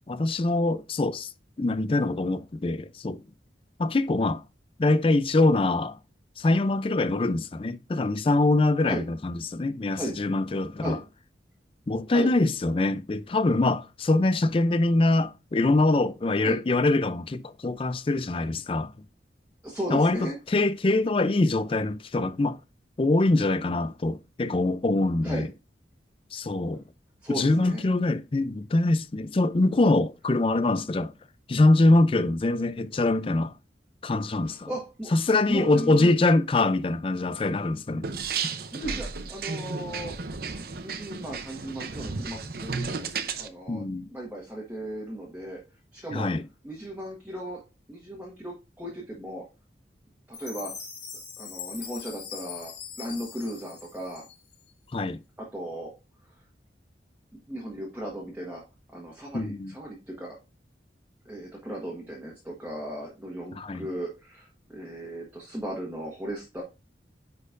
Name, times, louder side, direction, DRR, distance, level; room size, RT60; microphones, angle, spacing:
voice 1, 0.1-1.3 1.6-3.2 3.8-4.4 4.8-6.0 6.4-11.0 11.9-18.9 19.9-22.6 23.0-25.5 26.3-26.8 27.3-31.1 31.5-33.5 34.0-34.7 35.1-38.1 43.7-44.1 46.1-46.4 54.9-55.2 59.3-59.7 63.6-63.9, left 2 dB, 30° left, 0.4 m, -24 dB
voice 2, 19.6-20.4 25.2-25.5 27.2-27.8 34.4-35.1 35.4-36.1 38.7-40.2 40.8-43.0 43.4-43.8 44.1-45.6 45.9-46.3 46.6-47.6 47.9-49.5 50.3-50.8 51.4-54.3 55.4-55.9 56.2-56.3 57.5-60.4 61.2-66.6, right 1 dB, 10° right, 1.4 m, -36 dB
sound 1, 38.0-43.5, right 5 dB, 55° right, 0.7 m, -33 dB
Chime, 50.3-54.7, left 7 dB, 85° left, 3.5 m, -41 dB
9.7 x 4.3 x 2.5 m
head